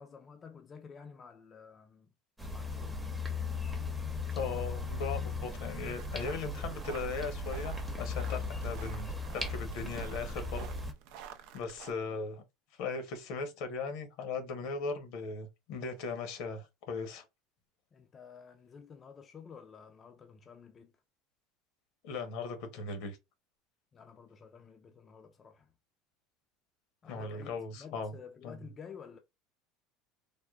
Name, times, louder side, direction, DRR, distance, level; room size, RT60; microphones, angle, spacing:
voice 1, 0.0-2.1 2.5-3.0 12.1-12.2 17.9-20.9 23.9-25.7 27.0-29.2, left 6 dB, 30° left, 0.4 m, -51 dB
sound 1, 2.4-10.9, left 3 dB, 5° right, 0.7 m, -37 dB
voice 2, 4.3-10.7 11.5-12.4 12.8-17.2 22.0-23.2 27.1-28.1 28.4-28.6, left 4 dB, 70° left, 0.9 m, -38 dB
sound 2, 6.0-11.9, right 8 dB, 70° right, 0.4 m, -51 dB
3.5 x 2.1 x 2.3 m
supercardioid pair, 100°, 0 cm